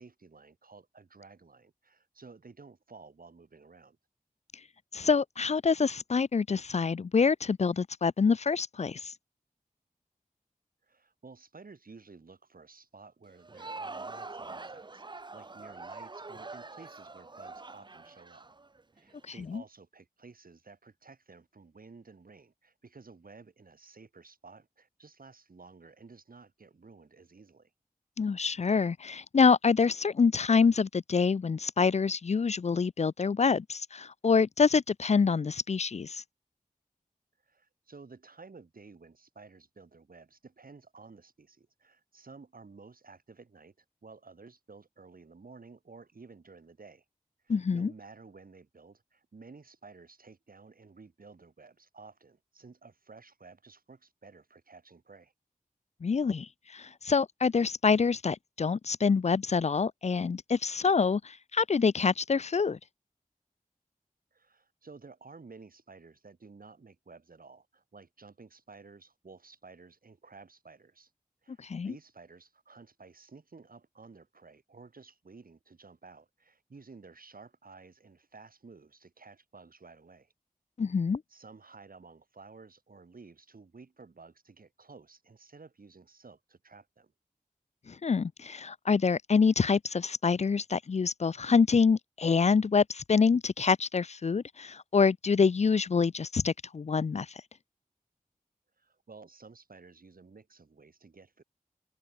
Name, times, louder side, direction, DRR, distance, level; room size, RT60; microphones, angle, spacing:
voice 1, 0.0-4.0 10.8-18.5 18.9-27.7 37.4-43.7 44.0-47.1 47.4-55.3 64.3-71.1 71.4-80.3 80.9-87.1 98.8-101.4, right 4 dB, 75° right, 2.2 m, -53 dB
voice 2, 4.9-9.1 19.5-19.6 28.2-36.2 47.5-47.9 56.0-62.8 71.6-71.9 80.8-81.2 87.9-97.3, left 5 dB, 50° left, 0.4 m, -26 dB
Crowd, 13.3-19.2, right 3 dB, 30° right, 0.5 m, -44 dB
wide cardioid pair, 70°, 15 cm